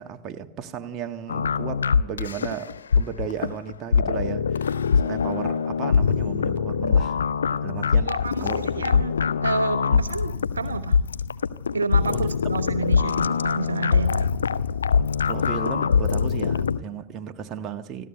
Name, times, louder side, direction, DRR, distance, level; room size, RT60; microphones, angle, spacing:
voice 1, 0.0-7.2 7.6-8.1 8.4-8.8 9.9-10.0 12.1-12.3 15.2-18.1, right 8 dB, 30° right, 1.5 m, -35 dB
sound 1, 1.3-16.8, left 6 dB, 70° left, 0.7 m, -23 dB
voice 2, 8.1-9.1 9.4-11.0 11.7-14.3, right 4 dB, 75° right, 0.9 m, -29 dB
25.5 x 15.0 x 8.0 m
figure-of-eight pair, 90°, 0 cm